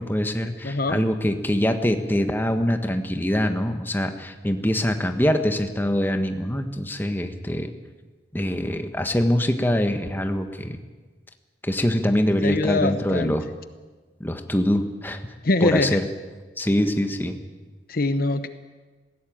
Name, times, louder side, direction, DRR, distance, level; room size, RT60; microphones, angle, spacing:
voice 1, 0.0-7.7 8.3-10.8 11.6-13.5 14.2-15.2 15.6-16.1 16.6-17.4, equal, 10° left, 7 dB, 1.3 m, -24 dB
voice 2, 0.6-1.0 12.4-13.3 15.4-16.0 17.9-18.5, left 2 dB, 50° left, 11 dB, 0.8 m, -23 dB
20.0 x 16.5 x 8.8 m, 1.3 s
head